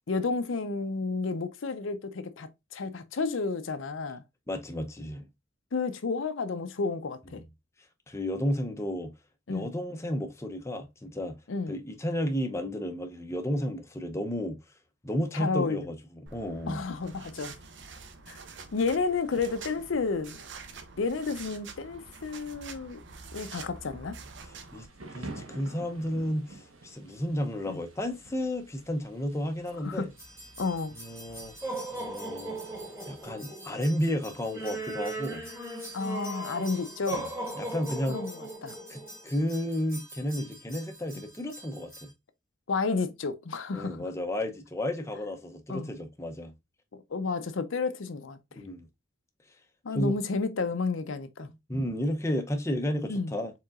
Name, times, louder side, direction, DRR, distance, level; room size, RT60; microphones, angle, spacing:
voice 1, 0.1-4.2 5.7-7.4 9.5-9.7 11.5-11.8 15.3-15.9 16.7-17.6 18.3-18.4 18.7-20.4 21.0-23.0 23.3-24.2 27.7-27.8 29.8-30.1 30.6-31.0 35.9-37.3 38.1-38.8 42.7-44.0 45.7-45.9 47.1-48.6 49.8-51.5 53.1-53.3, left 4 dB, 70° left, 0.6 m, -31 dB
voice 2, 4.5-5.2 8.1-9.1 9.5-11.4 11.7-14.6 15.0-16.8 24.7-24.9 25.1-30.1 30.9-31.5 31.9-32.5 33.1-35.4 37.1-37.3 37.6-38.2 38.9-42.1 43.7-46.5 48.6-48.9 49.9-50.1 51.7-53.5, equal, 15° left, 0.6 m, -32 dB
sound 1, 16.3-24.9, right 4 dB, 60° right, 0.7 m, -46 dB
Thunder / Rain, 24.2-33.2, right 2 dB, 90° right, 1.1 m, -49 dB
sound 2, 30.2-42.1, right 2 dB, 15° right, 1.8 m, -39 dB
4.7 x 3.7 x 2.4 m
head